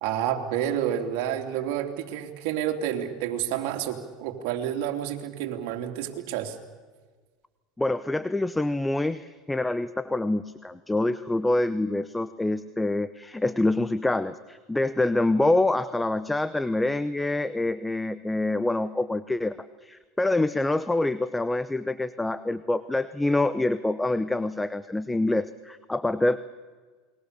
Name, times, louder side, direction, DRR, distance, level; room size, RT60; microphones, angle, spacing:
voice 1, 0.0-6.6, right 10 dB, 70° right, 3 dB, 3.2 m, -29 dB
voice 2, 7.8-26.4, left 2 dB, 10° left, 15 dB, 0.8 m, -26 dB
28.5 x 21.5 x 6.8 m, 1.4 s
supercardioid pair, 110°, 0 cm